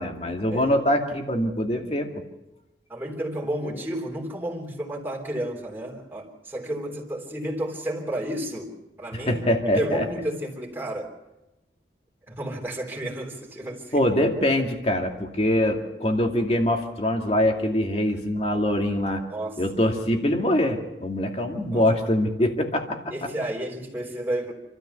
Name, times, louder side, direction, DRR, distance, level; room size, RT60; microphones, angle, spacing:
voice 1, 0.0-2.1 9.1-10.0 13.9-19.2 19.6-23.0, left 1 dB, 35° left, 3 dB, 2.3 m, -23 dB
voice 2, 2.9-11.1 12.3-14.0 19.3-19.6 21.7-21.8 22.4-22.5 23.1-24.5, right 1 dB, 10° right, -1 dB, 3.4 m, -32 dB
28.0 x 13.5 x 6.9 m, 0.96 s
head